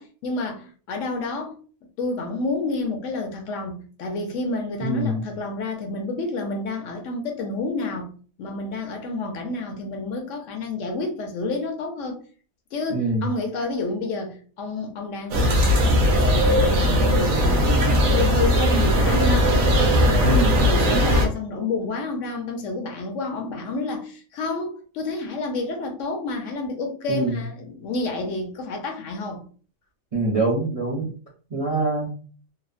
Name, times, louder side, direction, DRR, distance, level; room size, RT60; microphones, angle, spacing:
voice 1, 0.0-1.6 2.0-8.1 8.4-12.2 12.7-19.5 20.0-29.4, left 3 dB, 70° left, 0.9 m, -29 dB
voice 2, 4.8-5.2 12.9-13.2 20.2-20.6 27.1-27.4 30.1-31.1 31.5-32.1, right 2 dB, 40° right, 0.5 m, -24 dB
sound 1, 15.3-21.3, equal, 75° right, 1.0 m, -18 dB
2.8 x 2.0 x 2.4 m
omnidirectional pair, 1.4 m